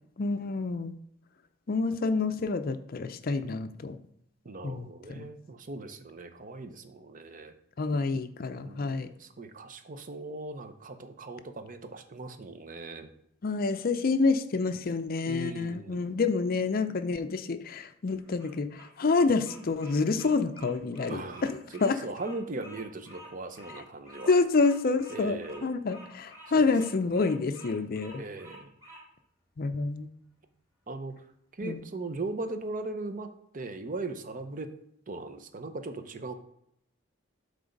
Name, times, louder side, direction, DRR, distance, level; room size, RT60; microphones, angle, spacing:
voice 1, 0.2-0.9 1.7-4.0 4.6-5.3 7.8-9.1 13.4-22.0 24.3-28.2 29.6-30.1 31.6-31.8, left 4 dB, 45° left, 10 dB, 0.5 m, -28 dB
voice 2, 4.4-7.5 8.6-13.1 15.3-16.2 21.1-24.3 25.1-25.7 26.6-26.7 28.1-28.7 30.9-31.2 31.6-34.7 35.1-36.3, right 2 dB, 40° right, 8 dB, 0.6 m, -39 dB
Bird vocalization bird call bird song, 18.2-29.0, equal, 15° right, 2.7 m, -50 dB
7.8 x 3.4 x 5.2 m, 0.74 s
head